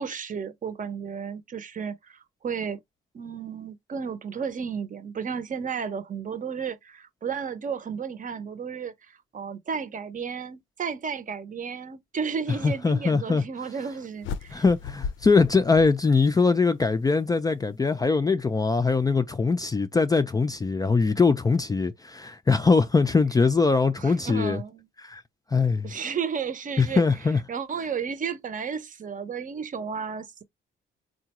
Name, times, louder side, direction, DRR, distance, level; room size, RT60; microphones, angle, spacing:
voice 1, 0.0-2.8 3.1-14.6 24.0-24.9 25.8-27.0 27.5-30.4, right 6 dB, 40° right, 0.7 m, -33 dB
voice 2, 12.6-13.4 14.5-24.6 25.0-25.2 25.5-25.9 26.8-27.4, left 4 dB, 20° left, 0.3 m, -22 dB
sound 1, 14.2-16.6, left 6 dB, 75° left, 0.5 m, -36 dB
3.7 x 2.2 x 2.8 m
cardioid pair, 90°, 20 cm